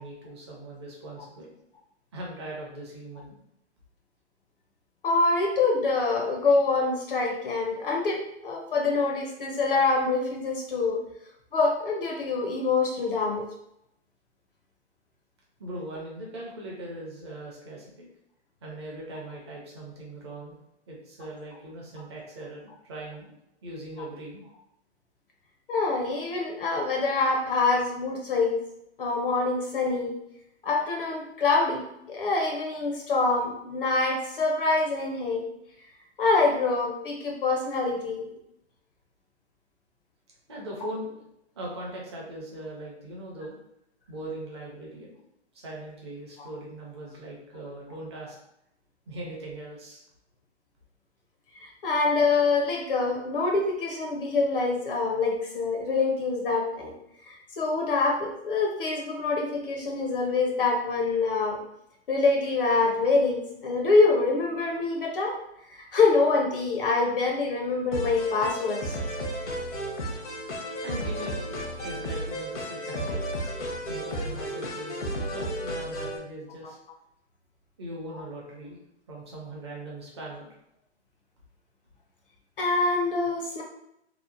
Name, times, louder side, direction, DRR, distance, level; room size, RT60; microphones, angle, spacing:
voice 1, 0.0-1.5 2.1-3.4 15.6-18.1 18.6-20.6 20.9-23.3 23.6-24.5 40.5-41.2 41.6-43.6 44.1-45.2 45.5-48.4 49.1-50.0 70.8-71.6 71.8-73.3 73.9-76.8 77.8-78.8 79.1-80.5, right 1 dB, 25° right, -3 dB, 0.5 m, -40 dB
voice 2, 5.0-11.0 11.5-13.5 25.7-28.6 29.0-30.1 30.6-35.5 36.2-38.3 46.4-46.5 51.6-56.9 57.2-61.6 62.1-65.3 65.7-69.0 82.6-83.6, left 3 dB, 50° left, 0 dB, 0.5 m, -25 dB
sound 1, 67.9-76.2, equal, 85° left, 0.8 m, -33 dB
2.8 x 2.1 x 2.4 m, 0.79 s
hypercardioid pair, 155°, 34 cm